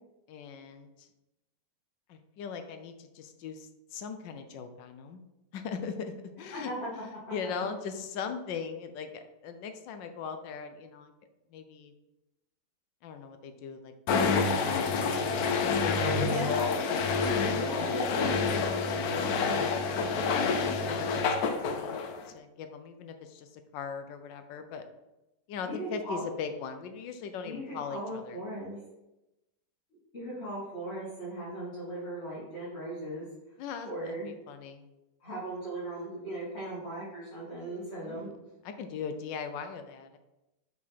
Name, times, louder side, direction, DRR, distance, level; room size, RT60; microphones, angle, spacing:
voice 1, 0.3-1.1 2.1-5.2 5.5-11.1 11.5-11.9 13.0-17.5 18.9-22.0 22.3-24.8 25.5-28.4 33.6-34.9 38.0-38.4 38.6-40.2, left 6 dB, 85° left, 8 dB, 1.4 m, -39 dB
sound 1, 14.1-22.3, left 4 dB, 65° left, 1.0 m, -28 dB
voice 2, 16.2-16.8 17.4-18.5 25.6-26.2 27.4-28.8 30.1-33.3 33.8-34.3 35.2-38.3, right 1 dB, 35° left, -11 dB, 2.4 m, -38 dB
5.8 x 4.8 x 4.1 m, 0.97 s
omnidirectional pair, 1.9 m